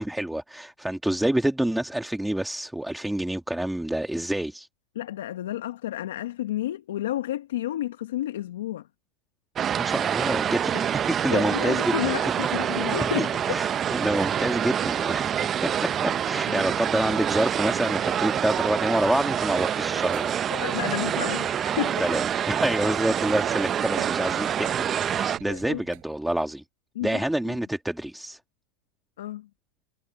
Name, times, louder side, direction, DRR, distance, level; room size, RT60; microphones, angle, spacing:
voice 1, 0.0-4.7 9.8-11.9 12.7-20.3 22.0-24.7 25.1-26.6 27.0-28.4, right 1 dB, 5° right, 1.7 m, -27 dB
voice 2, 4.9-8.9 11.3-13.6 16.5-16.6 20.5-22.0 25.5-25.8 26.9-27.5 29.2-29.5, left 13 dB, 80° left, 1.3 m, -31 dB
sound 1, 9.6-25.4, right 9 dB, 25° right, 0.7 m, -26 dB
sound 2, 20.0-26.0, right 38 dB, 55° right, 6.0 m, -47 dB
supercardioid pair, 130°, 0 cm